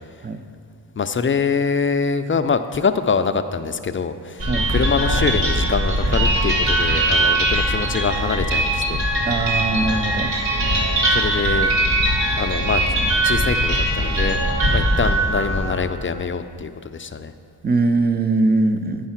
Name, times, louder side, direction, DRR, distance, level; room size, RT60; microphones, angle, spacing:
voice 1, 1.0-9.0 11.1-11.7 12.4-12.8 13.2-14.4 14.7-17.3, left 5 dB, 30° left, 9 dB, 0.4 m, -24 dB
sound 1, 4.4-15.7, right 1 dB, 75° right, 1.9 m, -20 dB
voice 2, 9.3-10.3 17.6-19.1, right 3 dB, 25° right, 9 dB, 0.6 m, -21 dB
9.6 x 5.5 x 5.8 m, 2.4 s
cardioid pair, 70°, 43 cm